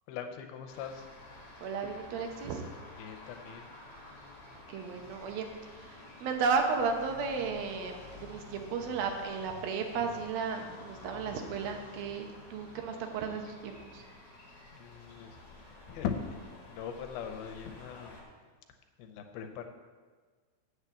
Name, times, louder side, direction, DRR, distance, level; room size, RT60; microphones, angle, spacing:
voice 1, 0.1-1.1 3.0-3.7 14.7-15.4 15.9-16.1 16.7-18.2 19.0-19.7, left 8 dB, 90° left, 5 dB, 2.7 m, -40 dB
sound 1, 0.7-18.2, left 2 dB, 45° left, 2.4 m, -51 dB
voice 2, 1.6-2.6 4.7-14.0, right 5 dB, 75° right, 4 dB, 2.7 m, -34 dB
8.0 x 6.6 x 7.2 m, 1.5 s
omnidirectional pair, 4.3 m